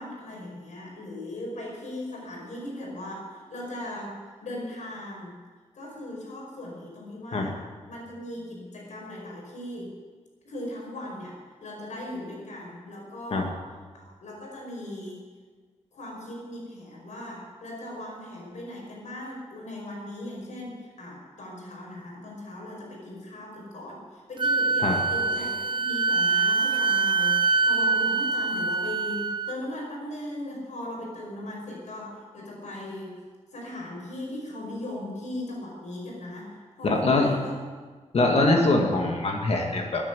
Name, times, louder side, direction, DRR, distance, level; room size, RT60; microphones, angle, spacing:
voice 1, 0.0-5.4 5.7-10.0 10.4-13.6 13.9-15.2 15.9-33.2 33.5-37.5, left 1 dB, 85° left, 0 dB, 5.3 m, -38 dB
Wind instrument woodwind instrument, 24.4-29.5, right 4 dB, 40° right, 0.6 m, -24 dB
voice 2, 36.8-37.3 38.1-40.1, left 2 dB, 60° left, 1 dB, 2.0 m, -23 dB
14.5 x 9.2 x 9.3 m, 1.5 s
wide cardioid pair, 120°, 12 cm